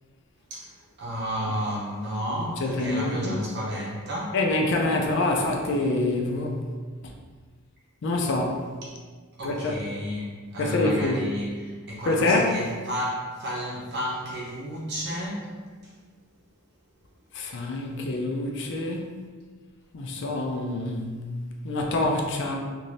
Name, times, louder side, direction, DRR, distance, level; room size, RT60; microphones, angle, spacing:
voice 1, 1.0-4.4 9.4-15.5, equal, 50° right, -5 dB, 0.8 m, -32 dB
voice 2, 2.3-3.3 4.3-6.5 8.0-8.6 9.4-9.7 10.6-11.2 12.1-12.5 17.3-19.1 19.9-21.2 21.6-22.6, left 2 dB, 55° left, 1 dB, 0.4 m, -26 dB
2.6 x 2.6 x 3.1 m, 1.5 s
head